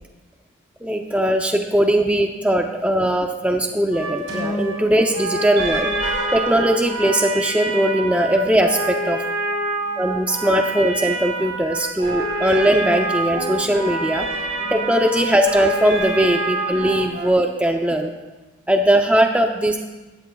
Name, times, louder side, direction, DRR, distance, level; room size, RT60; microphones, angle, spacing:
voice 1, 0.8-9.2 10.0-14.3 14.7-18.1 18.7-19.8, right 1 dB, 5° right, 3 dB, 0.5 m, -19 dB
sound 1, 3.9-17.3, right 2 dB, 70° right, 3.6 m, -26 dB
16.5 x 13.0 x 2.3 m, 1.2 s
head